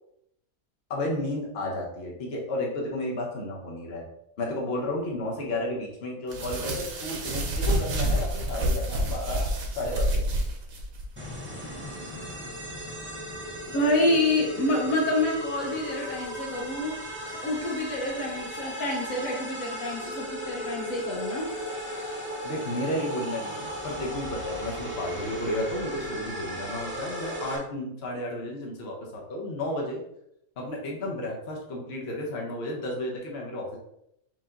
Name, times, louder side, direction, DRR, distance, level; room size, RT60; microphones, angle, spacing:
voice 1, 0.9-4.0 4.4-9.5 9.8-10.3 22.4-30.0 30.6-33.8, left 1 dB, 50° left, -1 dB, 1.2 m, -32 dB
sound 1, 6.3-11.1, right 1 dB, 70° right, 1.3 m, -28 dB
sound 2, 11.2-27.6, equal, 15° right, 0.5 m, -36 dB
voice 2, 13.7-17.0 17.2-21.5, left 1 dB, 70° left, -2 dB, 1.2 m, -27 dB
4.7 x 2.8 x 3.7 m, 0.77 s
omnidirectional pair, 1.5 m